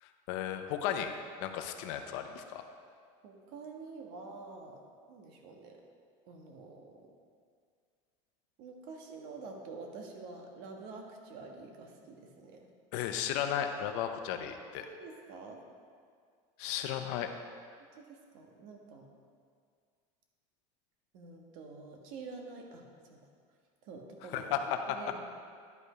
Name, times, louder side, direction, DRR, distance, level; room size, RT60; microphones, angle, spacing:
voice 1, 0.0-1.1 1.4-2.7 12.9-14.9 16.6-17.3 24.3-24.8, left 10 dB, 70° left, 7 dB, 0.8 m, -34 dB
voice 2, 3.2-4.8 5.1-5.8 6.3-7.1 8.6-12.7 14.8-15.6 17.9-19.1 21.1-23.3 23.8-24.5 24.9-25.2, right 4 dB, 65° right, 2 dB, 1.4 m, -47 dB
11.0 x 5.3 x 5.0 m, 2.1 s
supercardioid pair, 140°, 16 cm